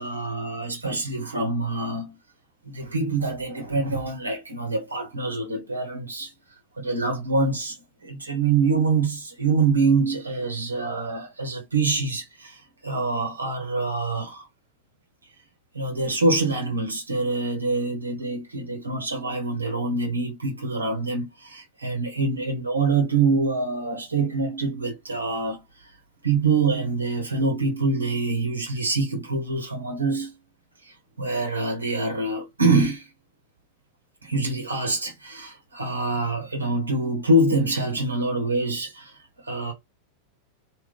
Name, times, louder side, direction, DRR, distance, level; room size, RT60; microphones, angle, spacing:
voice 1, 0.0-2.2 2.6-6.3 6.8-7.8 8.0-14.5 15.7-25.9 26.2-30.3 30.8-33.1 34.2-39.7, right 3 dB, 80° right, 1.3 m, -25 dB
3.6 x 2.5 x 4.1 m
figure-of-eight pair, 90°, 0 cm